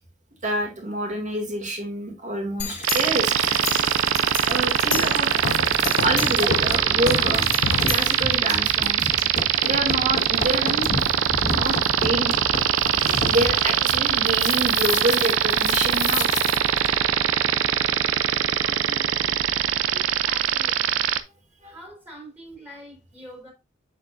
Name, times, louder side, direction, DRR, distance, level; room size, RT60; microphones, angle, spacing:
voice 1, 0.4-3.3 4.5-5.5 6.0-7.5 7.9-9.1 9.6-10.9 11.5-12.3 13.2-16.3 21.1-21.2 21.6-21.7, right 1 dB, 40° right, 2.3 m, -27 dB
sound 1, 2.6-16.9, left 3 dB, 35° left, 1.5 m, -31 dB
sound 2, 2.8-21.2, right 9 dB, 80° right, 0.6 m, -22 dB
sound 3, 4.9-8.6, left 5 dB, 80° left, 0.5 m, -31 dB
voice 2, 18.6-19.3 19.9-21.0 21.6-23.5, equal, 10° right, 3.1 m, -44 dB
7.1 x 6.7 x 2.6 m
head